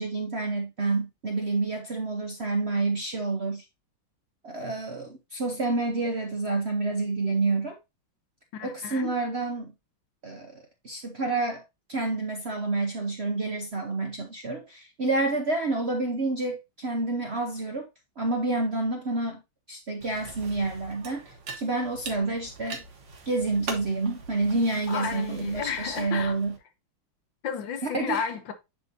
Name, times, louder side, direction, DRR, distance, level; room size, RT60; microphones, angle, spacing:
voice 1, 0.0-3.6 4.4-7.8 8.6-9.7 10.2-10.5 10.8-11.6 11.9-17.9 18.2-19.4 19.7-21.2 21.5-22.8 23.3-26.6 27.9-28.2, right 3 dB, 50° right, 0.8 m, -28 dB
voice 2, 8.5-9.1 24.9-26.4 27.4-28.5, left 6 dB, 70° left, 1.6 m, -32 dB
sound 1, 20.0-26.6, right 4 dB, 70° right, 2.1 m, -42 dB
10.5 x 3.8 x 2.7 m
omnidirectional pair, 2.2 m